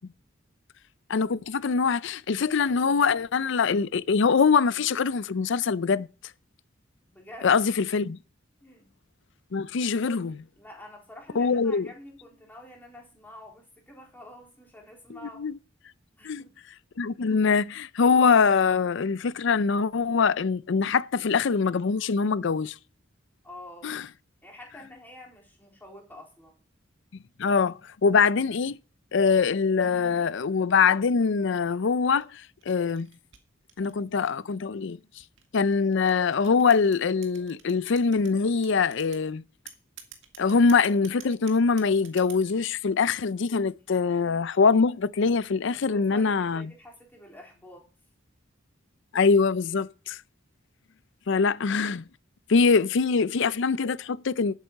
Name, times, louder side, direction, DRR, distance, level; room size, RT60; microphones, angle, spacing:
voice 1, 1.1-6.1 7.4-8.2 9.5-10.4 11.4-11.9 15.4-15.6 16.2-16.4 17.0-22.7 23.8-24.1 27.4-28.8 29.1-33.1 33.8-35.0 35.5-39.4 40.4-46.7 49.1-50.2 51.3-52.0 52.5-54.5, left 5 dB, 65° left, 0.5 m, -23 dB
voice 2, 7.1-7.6 8.6-8.9 10.6-15.4 16.2-16.6 23.4-23.9 24.4-26.5 45.7-47.8, left 1 dB, 10° left, 3.9 m, -47 dB
sound 1, 32.0-34.5 35.2-38.3 38.6-39.3 39.7-42.6, right 9 dB, 65° right, 2.0 m, -48 dB
11.5 x 8.3 x 5.4 m
head